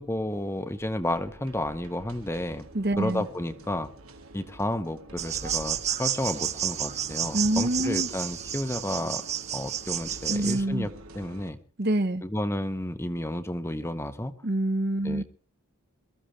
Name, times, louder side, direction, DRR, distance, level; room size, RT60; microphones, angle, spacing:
voice 1, 0.0-2.6 3.0-3.9 4.3-9.2 9.5-10.9 11.1-11.6 12.2-14.3 15.0-15.2, left 1 dB, 10° left, 10 dB, 0.9 m, -31 dB
sound 1, 0.8-11.5, right 1 dB, 80° right, 2.1 m, -48 dB
voice 2, 2.7-3.3 7.3-8.1 10.3-10.9 11.8-12.2 14.4-15.2, right 1 dB, 50° right, 10 dB, 1.1 m, -26 dB
sound 2, 5.2-10.6, right 10 dB, 30° right, 0.7 m, -31 dB
22.5 x 14.0 x 3.3 m, 0.40 s
head